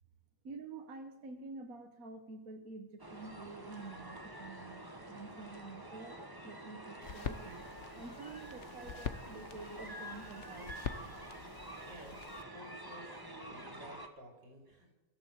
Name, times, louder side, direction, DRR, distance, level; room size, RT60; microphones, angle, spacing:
voice 1, 0.4-7.7 8.0-10.7, right 3 dB, 55° right, 5 dB, 1.8 m, -49 dB
sound 1, 3.0-14.1, right 1 dB, 15° right, 1.5 m, -48 dB
sound 2, 7.0-12.4, left 7 dB, 50° left, 1.1 m, -45 dB
voice 2, 11.8-15.0, right 1 dB, 85° right, 1 dB, 4.8 m, -54 dB
23.0 x 14.0 x 8.0 m, 1.2 s
omnidirectional pair, 1.8 m